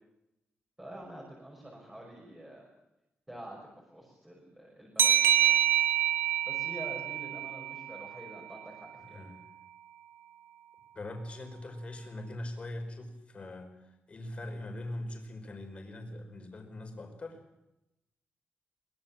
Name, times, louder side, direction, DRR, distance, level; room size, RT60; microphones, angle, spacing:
voice 1, 0.8-2.7 3.3-3.6 3.9-5.6 6.5-9.2, right 1 dB, 10° right, -3 dB, 5.9 m, -47 dB
sound 1, 5.0-8.3, right 11 dB, 75° right, 1.4 m, -27 dB
voice 2, 9.0-9.3 10.9-17.4, left 1 dB, 30° left, 4 dB, 5.0 m, -42 dB
24.0 x 22.0 x 7.4 m, 0.91 s
wide cardioid pair, 175°, 4 cm